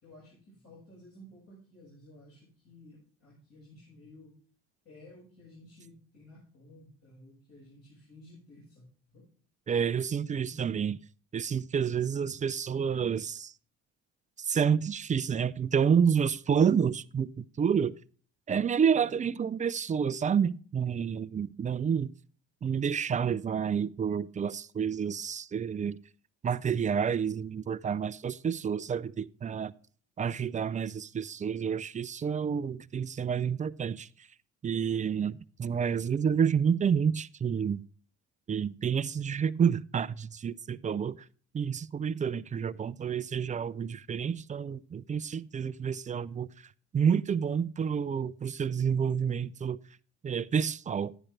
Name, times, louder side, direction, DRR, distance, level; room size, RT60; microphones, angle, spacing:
voice 1, 0.0-4.4 4.8-9.3 10.2-10.9 18.9-19.2, left 1 dB, 50° left, 6.2 m, -54 dB
voice 2, 9.7-11.0 11.3-13.5 14.4-17.9 18.5-22.1 22.6-26.0 26.4-29.7 30.2-34.1 34.6-37.8 38.5-41.2 41.5-46.5 46.9-49.8 50.2-51.1, right 7 dB, 25° right, 0.4 m, -29 dB
12.0 x 10.0 x 3.3 m
supercardioid pair, 85°, 32 cm